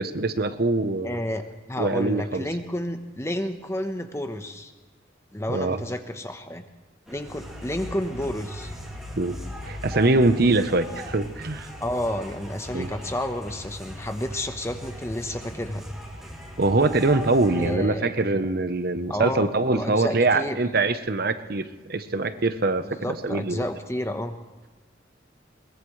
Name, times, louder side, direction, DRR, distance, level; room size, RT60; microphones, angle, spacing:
voice 1, 0.0-1.2 1.8-2.5 5.5-5.8 9.2-9.4 9.6-11.7 12.7-12.9 16.6-23.6, right 2 dB, 55° right, 10 dB, 0.9 m, -23 dB
voice 2, 1.0-4.7 5.3-6.6 7.1-8.7 11.8-15.8 17.6-18.1 19.1-20.6 22.8-24.3, left 1 dB, 15° left, 7 dB, 1.0 m, -31 dB
sound 1, 7.1-17.8, equal, ahead, 2.4 m, -39 dB
22.0 x 20.5 x 3.2 m, 1.3 s
head